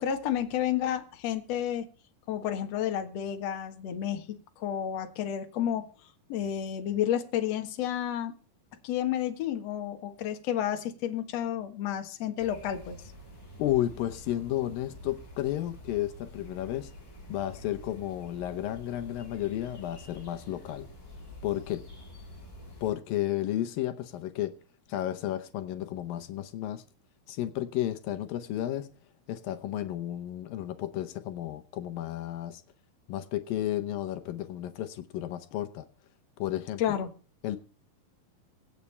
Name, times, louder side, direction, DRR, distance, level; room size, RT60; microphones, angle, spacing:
voice 1, 0.0-1.9 2.3-4.3 4.6-5.9 6.3-8.3 8.8-13.0 36.8-37.1, left 10 dB, 55° left, 6 dB, 2.2 m, -31 dB
sound 1, 12.4-22.9, left 1 dB, 30° left, 6.6 m, -48 dB
voice 2, 13.6-16.9 17.3-20.9 21.4-21.8 22.8-24.5 24.9-26.8 27.3-28.9 29.3-32.6 33.1-35.9 36.4-37.0 37.4-37.6, left 13 dB, 80° left, 9 dB, 2.6 m, -32 dB
24.5 x 8.4 x 3.3 m, 0.38 s
omnidirectional pair, 4.1 m